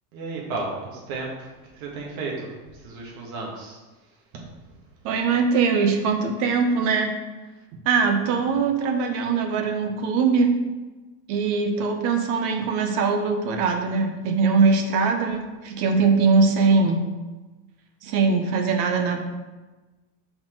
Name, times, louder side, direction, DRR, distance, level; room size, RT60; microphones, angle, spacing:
voice 1, 0.1-1.5 1.7-3.8, right 3 dB, 60° right, -2 dB, 1.7 m, -33 dB
voice 2, 5.0-7.1 7.8-10.6 11.3-17.0 18.0-19.2, right 4 dB, 40° right, 5 dB, 0.8 m, -21 dB
5.7 x 4.4 x 4.5 m, 1.2 s
supercardioid pair, 155°, 48 cm